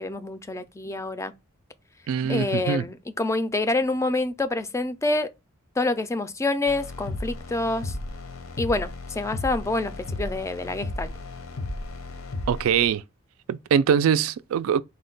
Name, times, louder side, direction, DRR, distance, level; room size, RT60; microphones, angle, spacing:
voice 1, 0.0-1.3 2.2-5.3 5.8-8.0 8.6-11.1, left 2 dB, 15° left, 0.3 m, -27 dB
voice 2, 2.1-2.8 12.5-13.0 13.5-14.8, right 7 dB, 75° right, 0.3 m, -22 dB
sound 1, 6.7-12.9, left 2 dB, 75° left, 0.7 m, -34 dB
4.2 x 2.2 x 3.8 m
head